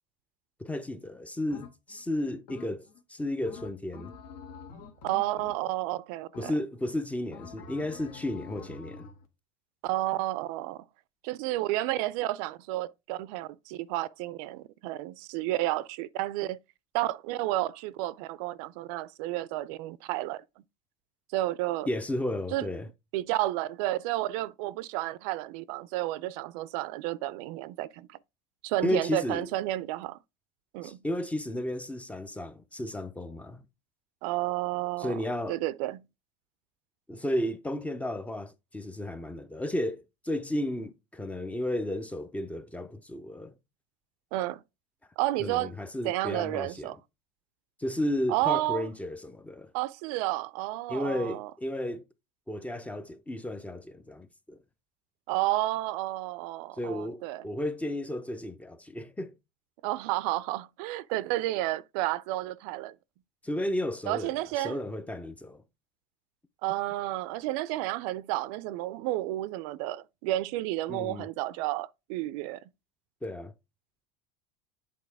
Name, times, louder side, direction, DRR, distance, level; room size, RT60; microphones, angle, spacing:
voice 1, 0.6-4.1 6.4-9.1 21.9-22.9 28.8-29.5 30.8-33.6 35.0-35.6 37.1-43.5 45.4-46.9 47.8-49.7 50.9-52.1 52.5-54.6 56.8-59.3 63.4-65.6 70.9-71.3 73.2-73.5, left 1 dB, 5° left, 0.5 m, -33 dB
sound 1, 1.5-2.0 2.5-3.0 3.5-5.9 6.3-6.9 7.3-9.3, left 5 dB, 75° left, 1.7 m, -47 dB
voice 2, 5.0-6.5 9.8-10.8 11.2-16.6 16.9-20.4 21.3-21.9 22.5-22.7 23.1-28.1 28.6-30.2 30.7-31.0 34.2-35.2 35.5-36.0 44.3-44.6 45.2-45.7 46.0-47.0 48.3-48.9 49.7-51.5 55.3-57.4 59.8-62.9 64.1-64.8 66.6-72.6, right 16 dB, 65° right, 0.4 m, -31 dB
8.5 x 4.1 x 3.3 m
supercardioid pair, 135°, 20 cm